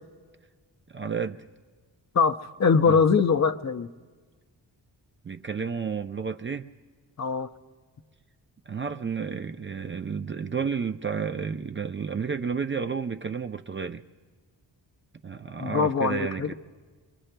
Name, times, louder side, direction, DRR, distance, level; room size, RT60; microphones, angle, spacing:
voice 1, 0.9-1.5 2.9-3.0 5.2-6.7 8.7-14.0 15.2-16.5, right 6 dB, 30° right, 0.4 m, -31 dB
voice 2, 2.1-3.9 7.2-7.5 15.6-16.5, left 5 dB, 40° left, 0.6 m, -22 dB
25.5 x 23.5 x 2.2 m
cardioid pair, 70°, 44 cm